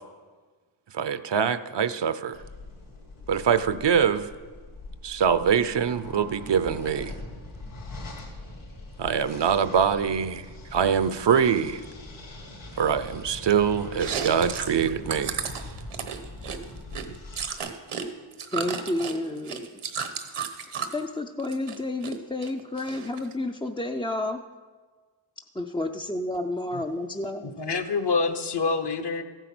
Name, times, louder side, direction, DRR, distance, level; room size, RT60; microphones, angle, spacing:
voice 1, 1.0-2.4 3.3-4.3 5.0-7.1 9.0-10.4 10.7-11.8 12.8-15.4, right 7 dB, 60° right, 0.6 m, -24 dB
sound 1, 2.3-17.6, left 2 dB, 70° left, 2.9 m, -42 dB
Chewing mastication, 13.9-18.1 18.3-21.0 21.4-22.1 22.4-23.3, right 6 dB, 85° right, 1.2 m, -33 dB
voice 2, 18.5-19.8 20.9-24.4 25.5-27.5, left 2 dB, 10° left, 0.4 m, -30 dB
voice 3, 27.4-29.2, left 4 dB, 55° left, 1.0 m, -26 dB
14.5 x 9.1 x 6.0 m
wide cardioid pair, 130°, 50 cm